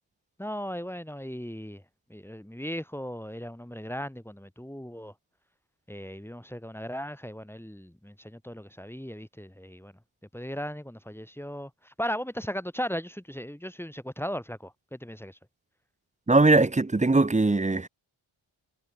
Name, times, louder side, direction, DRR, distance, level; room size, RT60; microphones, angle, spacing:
voice 1, 0.4-1.8 2.1-5.1 5.9-9.9 10.3-15.4, equal, 5° left, 3.4 m, -37 dB
voice 2, 16.3-17.9, right 3 dB, 15° right, 0.7 m, -20 dB
wide cardioid pair, 100°, 50 cm